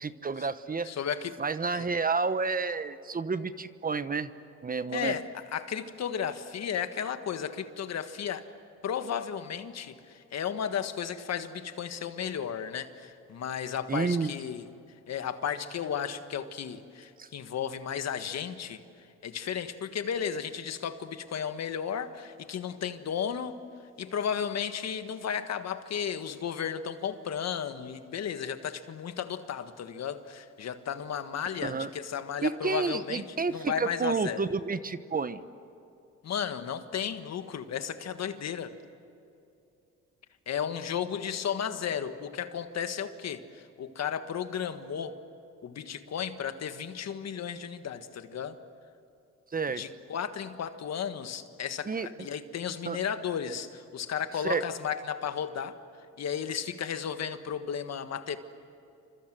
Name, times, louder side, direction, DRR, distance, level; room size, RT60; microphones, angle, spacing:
voice 1, 0.0-0.9 1.4-4.3 4.6-5.2 13.9-14.3 17.2-17.3 31.6-31.9 32.4-35.4 49.5-49.8 51.8-52.1 52.9-53.0 54.4-54.6, right 4 dB, 30° right, 1.0 m, -30 dB
voice 2, 0.8-1.4 1.7-1.9 4.9-8.5 8.8-14.7 15.1-18.8 19.2-23.7 24.0-33.2 33.5-34.4 36.2-38.7 40.5-45.2 45.6-48.6 49.8-55.8 56.2-58.4, left 8 dB, 60° left, 1.6 m, -34 dB
28.0 x 26.0 x 7.8 m
cardioid pair, 90°, 30 cm